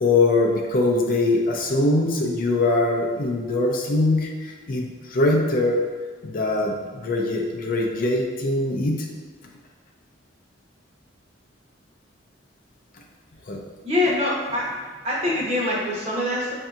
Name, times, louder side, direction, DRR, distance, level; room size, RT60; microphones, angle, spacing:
voice 1, 0.0-5.8 6.2-9.0 13.5-13.6, left 2 dB, 45° left, 0 dB, 0.5 m, -22 dB
voice 2, 13.8-14.8 15.0-16.5, left 1 dB, 35° right, -4 dB, 0.8 m, -24 dB
5.3 x 2.7 x 2.4 m, 1.5 s
head